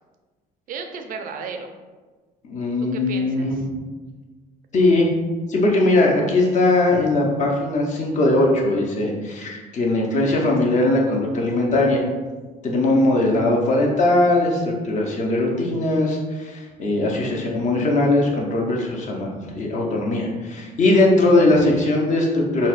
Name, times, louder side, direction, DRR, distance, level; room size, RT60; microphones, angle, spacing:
voice 1, 0.7-1.7 2.8-3.6 17.0-17.5, right 5 dB, 55° right, 5 dB, 0.4 m, -35 dB
voice 2, 2.4-3.6 4.7-5.1 5.5-12.0 12.6-19.3 19.5-22.7, left 2 dB, 45° left, -1 dB, 0.6 m, -20 dB
4.0 x 2.1 x 2.4 m, 1.3 s
cardioid pair, 110°, 17 cm